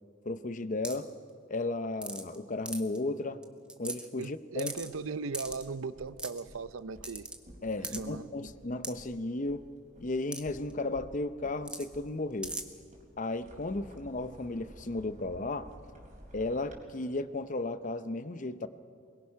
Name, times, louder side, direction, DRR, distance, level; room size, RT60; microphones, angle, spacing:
voice 1, 0.3-1.1 1.5-3.4 3.8-4.7 7.6-9.6 10.0-12.6 13.2-15.7 16.3-18.7, left 2 dB, 40° left, 12 dB, 0.7 m, -34 dB
sound 1, 0.8-1.1 2.0-2.3 2.7-3.0 3.4-3.5 3.7-4.2 4.6-4.9 5.3-5.6 6.2-6.4 7.0-7.4 7.8-8.0 8.8-8.9 10.3-10.4 10.7-10.8 11.6-11.9 12.4-12.6, right 2 dB, 5° right, 1.1 m, -38 dB
voice 2, 4.2-7.3 7.8-8.3, right 4 dB, 80° right, 15 dB, 0.6 m, -38 dB
sound 2, 4.8-16.8, equal, 35° right, 4.0 m, -54 dB
23.5 x 22.0 x 5.8 m, 2.4 s
head